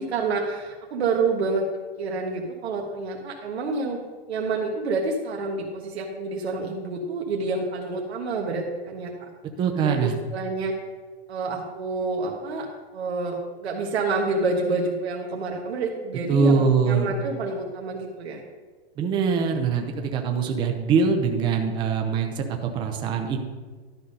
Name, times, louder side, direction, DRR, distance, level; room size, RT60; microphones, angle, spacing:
voice 1, 0.0-1.6 2.0-4.0 4.3-9.3 9.8-10.7 11.3-12.7 12.9-18.4, right 3 dB, 85° right, 0 dB, 1.4 m, -28 dB
voice 2, 9.6-10.1 16.3-17.2 19.0-23.4, right 5 dB, 15° right, 4 dB, 0.6 m, -23 dB
11.5 x 5.4 x 5.3 m, 1.4 s
hypercardioid pair, 155°, 31 cm